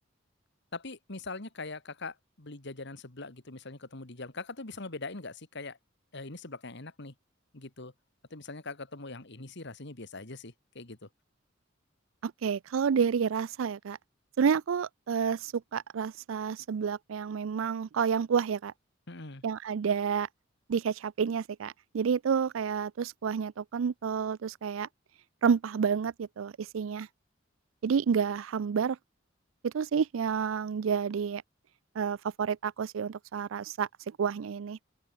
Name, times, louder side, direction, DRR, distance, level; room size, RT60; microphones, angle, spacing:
voice 1, 0.7-5.8 6.1-7.1 7.5-7.9 8.3-11.1 19.1-19.4, left 3 dB, 60° left, 2.3 m, -42 dB
voice 2, 12.2-14.0 14.4-18.7 19.4-20.3 20.7-24.9 25.4-27.1 27.8-29.0 29.6-31.4 32.0-34.8, right 6 dB, 80° right, 0.4 m, -29 dB
open air
head